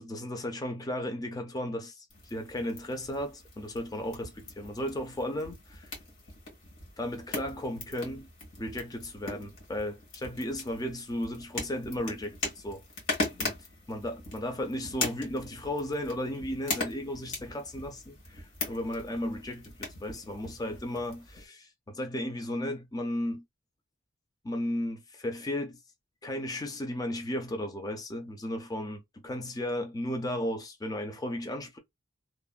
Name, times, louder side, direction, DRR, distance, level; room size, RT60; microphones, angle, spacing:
voice 1, 0.0-6.0 7.0-8.3 8.6-12.8 13.4-23.4 24.4-25.8 26.2-31.8, left 1 dB, 15° left, 0.4 m, -35 dB
sound 1, 2.1-21.4, left 2 dB, 65° left, 1.6 m, -40 dB
3.0 x 2.0 x 2.4 m
head